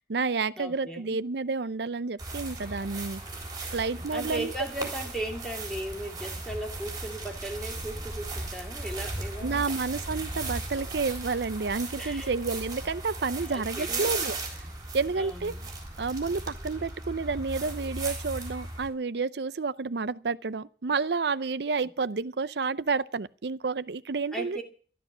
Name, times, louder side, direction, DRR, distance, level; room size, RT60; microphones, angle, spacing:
voice 1, 0.0-3.2 3.7-4.5 4.8-4.9 9.4-14.3 14.9-15.5 16.0-24.6, right 4 dB, 70° right, 0.6 m, -30 dB
voice 2, 0.6-1.2 4.1-9.6 12.0-12.4 13.4-14.1 15.2-15.6 24.3-24.6, right 1 dB, 5° left, 2.5 m, -37 dB
sound 1, 2.2-18.9, right 2 dB, 20° right, 3.6 m, -37 dB
13.0 x 12.0 x 7.3 m
head